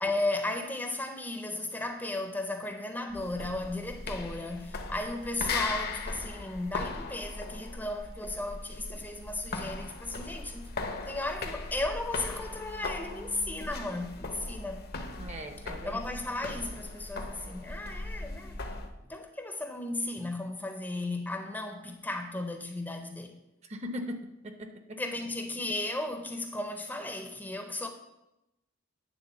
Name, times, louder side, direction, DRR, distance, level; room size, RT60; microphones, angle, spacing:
voice 1, 0.0-10.7 11.1-14.9 15.8-18.6 19.0-23.3 25.0-27.9, left 2 dB, 10° left, 0.6 m, -35 dB
sound 1, 3.1-18.9, left 3 dB, 50° left, 0.8 m, -38 dB
voice 2, 15.2-16.0 23.7-25.0, equal, 30° right, 0.7 m, -39 dB
9.3 x 3.7 x 6.9 m
head